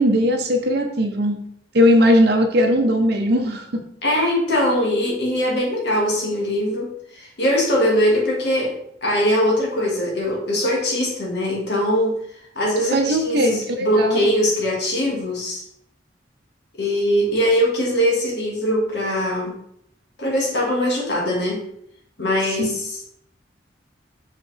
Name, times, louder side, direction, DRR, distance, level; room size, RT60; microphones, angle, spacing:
voice 1, 0.0-1.4 1.7-3.8 12.9-14.3 22.6-22.7, equal, 60° right, 3 dB, 0.9 m, -18 dB
voice 2, 4.0-8.7 9.0-12.2 12.6-15.6 16.8-19.6 20.2-21.6 22.2-23.0, equal, 65° left, -2 dB, 1.8 m, -21 dB
5.7 x 5.0 x 3.4 m, 0.71 s
head